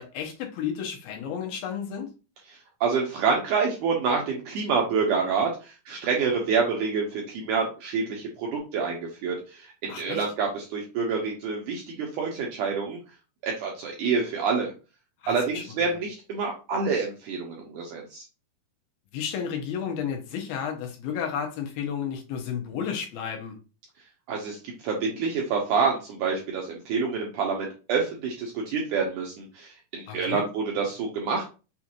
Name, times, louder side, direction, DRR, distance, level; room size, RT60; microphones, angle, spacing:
voice 1, 0.0-2.1 9.9-10.2 15.2-16.0 19.1-23.6 30.1-30.4, left 7 dB, 80° left, 2.6 m, -32 dB
voice 2, 2.8-13.0 13.4-14.7 15.3-18.2 24.3-31.4, right 5 dB, 75° right, 1.9 m, -27 dB
6.1 x 2.4 x 2.9 m
omnidirectional pair, 4.4 m